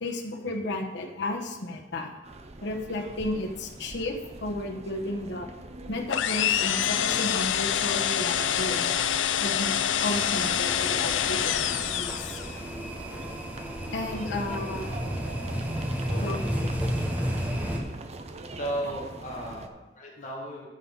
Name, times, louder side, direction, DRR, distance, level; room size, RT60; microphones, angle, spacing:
voice 1, 0.0-2.1 2.6-5.5 5.9-8.9 9.4-12.4 13.9-14.9 16.1-16.7, left 2 dB, 70° left, 1 dB, 1.2 m, -33 dB
sound 1, 2.2-19.7, right 2 dB, 35° right, 0.6 m, -43 dB
sound 2, 6.1-12.6, left 10 dB, 85° left, 0.4 m, -26 dB
sound 3, 10.0-17.8, equal, 10° right, 1.1 m, -32 dB
voice 2, 14.0-14.5 14.9-15.6 16.0-16.3 18.6-20.7, right 1 dB, 45° left, -4 dB, 1.6 m, -37 dB
10.0 x 4.0 x 7.1 m, 1.1 s
head